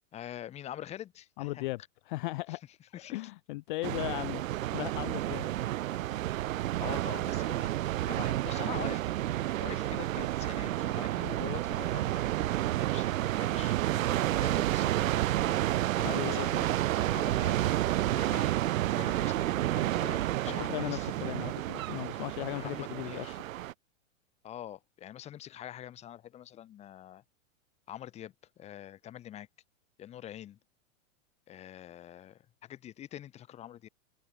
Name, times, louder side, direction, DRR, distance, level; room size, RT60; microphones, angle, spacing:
voice 1, 0.1-1.6 2.5-2.6 2.9-3.2 5.3-5.4 6.8-7.8 8.1-15.0 15.9-17.6 18.1-18.6 19.0-21.1 22.1-22.2 22.5-23.4 24.4-27.2 27.9-29.5 30.0-30.6 31.5-33.9, left 11 dB, 15° left, 1.1 m, -45 dB
voice 2, 1.4-1.8 2.1-2.6 3.0-5.4 16.1-16.7 20.4-23.4, left 20 dB, 40° left, 0.6 m, -37 dB
sound 1, 3.8-23.7, right 14 dB, 75° right, 1.1 m, -30 dB
sound 2, 12.3-21.4, right 9 dB, 15° right, 1.3 m, -50 dB
supercardioid pair, 160°, 40 cm